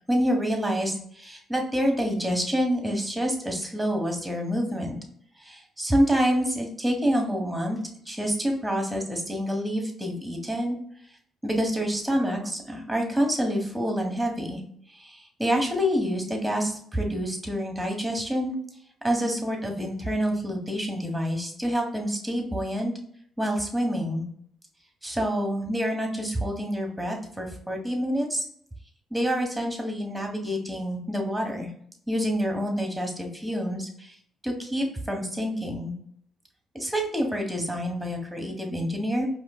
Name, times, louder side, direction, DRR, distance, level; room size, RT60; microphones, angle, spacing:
voice 1, 0.1-5.0 5.4-7.8 8.0-10.8 11.4-14.6 14.9-18.6 19.0-22.9 23.4-24.2 25.0-28.4 29.1-31.7 32.1-34.2 34.4-36.0 36.7-39.3, equal, 5° right, 2 dB, 1.5 m, -27 dB
4.8 x 2.8 x 2.4 m, 0.63 s
hypercardioid pair, 45°, 0 cm